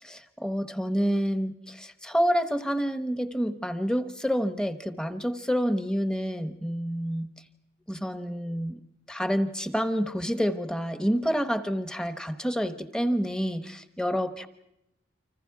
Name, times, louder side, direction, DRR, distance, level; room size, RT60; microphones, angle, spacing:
voice 1, 0.0-7.3 7.9-8.8 9.1-14.5, equal, 5° left, 8 dB, 1.0 m, -28 dB
29.5 x 25.5 x 4.8 m, 0.86 s
head